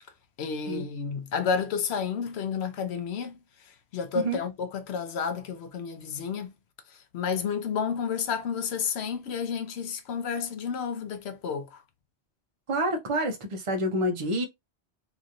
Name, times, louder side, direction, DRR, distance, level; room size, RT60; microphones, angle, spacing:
voice 1, 0.4-3.3 3.9-6.5 7.1-11.8, left 6 dB, 70° left, 0.9 m, -31 dB
voice 2, 12.7-14.4, right 1 dB, 35° right, 0.6 m, -28 dB
3.0 x 2.6 x 2.5 m
omnidirectional pair, 1.2 m